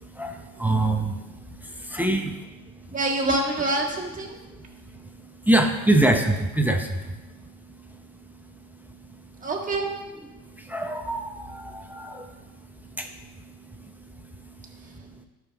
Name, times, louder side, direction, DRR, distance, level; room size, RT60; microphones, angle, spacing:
voice 1, 0.0-3.0 4.3-9.4 10.3-15.2, right 1 dB, 5° right, 3 dB, 0.7 m, -28 dB
voice 2, 2.9-4.3 9.4-9.9, right 2 dB, 20° right, -2 dB, 1.8 m, -26 dB
13.5 x 6.2 x 3.5 m, 1.1 s
cardioid pair, 120°, 39 cm